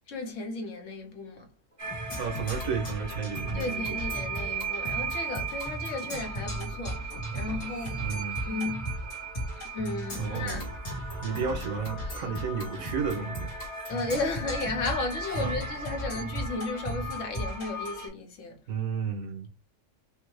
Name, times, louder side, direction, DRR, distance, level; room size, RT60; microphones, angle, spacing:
voice 1, 0.1-1.5 3.5-8.9 9.6-10.6 12.1-12.3 13.9-18.6, left 3 dB, 70° left, 1.3 m, -34 dB
sound 1, 1.7-9.4 9.8-17.4, right 2 dB, 10° left, 1.0 m, -41 dB
sound 2, 1.8-18.1, right 4 dB, 35° right, 1.1 m, -38 dB
Percussion, 2.1-18.1, equal, 85° left, 2.0 m, -38 dB
voice 2, 2.2-4.0 8.0-8.4 10.2-10.7 11.2-13.5 15.4-15.5 18.7-19.5, right 6 dB, 85° right, 1.6 m, -32 dB
5.3 x 2.2 x 3.1 m
omnidirectional pair, 1.4 m